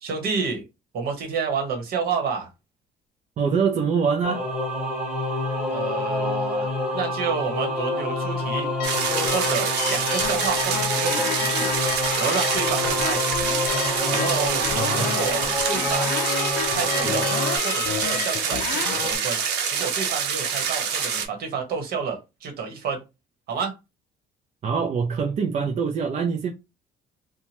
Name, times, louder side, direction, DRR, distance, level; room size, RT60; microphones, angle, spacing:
voice 1, 0.0-0.6 0.9-2.5 5.7-6.7 6.9-8.7 9.3-11.7 12.2-13.2 14.1-14.6 15.0-16.2 16.7-17.3 17.6-19.4 19.7-23.0 23.5-23.7, right 5 dB, 65° right, 1.2 m, -29 dB
voice 2, 3.4-4.4 14.8-15.2 24.6-26.5, right 6 dB, 45° right, 0.5 m, -24 dB
Singing / Musical instrument, 4.2-17.6, left 1 dB, 5° right, 1.6 m, -27 dB
sound 1, 8.8-19.1, left 11 dB, 75° left, 0.4 m, -32 dB
sound 2, 8.8-21.2, right 7 dB, 80° right, 0.8 m, -26 dB
2.7 x 2.2 x 2.9 m
cardioid pair, 110°, 17 cm